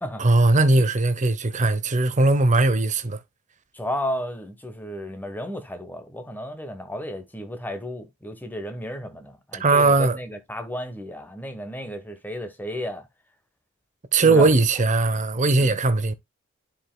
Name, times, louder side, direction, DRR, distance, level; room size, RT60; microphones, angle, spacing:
voice 1, 0.2-3.2 9.6-10.2 14.1-16.1, right 3 dB, 35° right, 0.8 m, -19 dB
voice 2, 3.7-13.0 14.2-14.5 15.6-15.8, equal, 10° left, 1.1 m, -33 dB
11.0 x 5.1 x 2.2 m
head